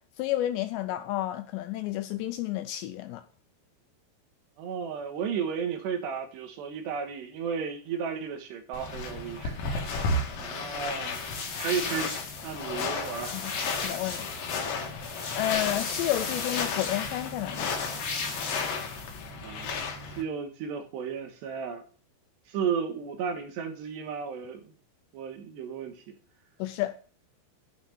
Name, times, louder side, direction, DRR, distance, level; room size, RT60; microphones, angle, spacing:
voice 1, 0.2-3.2 13.3-13.5 13.8-14.3 15.3-17.7 26.6-27.0, left 14 dB, 80° left, 2.6 m, -31 dB
voice 2, 4.6-12.1 12.4-13.3 19.4-19.7 20.1-21.8 22.5-24.7 25.1-26.0, right 6 dB, 70° right, 3.2 m, -34 dB
sound 1, 8.7-20.2, left 3 dB, 60° left, 2.8 m, -34 dB
sound 2, 11.1-19.3, left 4 dB, 40° left, 2.3 m, -37 dB
10.5 x 5.8 x 7.2 m
omnidirectional pair, 5.5 m